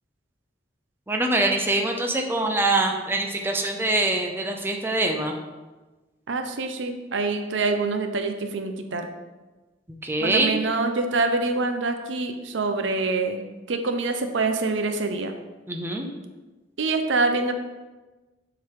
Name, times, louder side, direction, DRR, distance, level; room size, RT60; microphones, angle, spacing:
voice 1, 1.1-5.3 10.0-10.6 15.7-16.1, right 2 dB, 10° right, 3 dB, 0.6 m, -24 dB
voice 2, 6.3-9.1 10.2-13.4 13.7-15.4 16.8-17.5, right 3 dB, 90° right, 6 dB, 0.7 m, -25 dB
7.4 x 4.0 x 4.6 m, 1.2 s
head